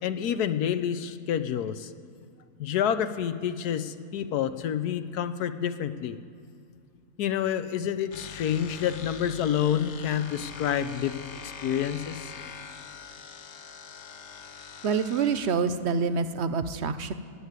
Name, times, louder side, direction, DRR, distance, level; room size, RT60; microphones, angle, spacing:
voice 1, 0.0-1.9 2.6-6.2 7.2-12.3, left 9 dB, 90° left, 11 dB, 1.3 m, -28 dB
sound 1, 8.1-15.6, left 6 dB, 50° left, 1.1 m, -43 dB
voice 2, 14.8-17.1, right 5 dB, 55° right, 11 dB, 0.8 m, -26 dB
16.5 x 8.1 x 9.5 m, 2.4 s
omnidirectional pair, 1.6 m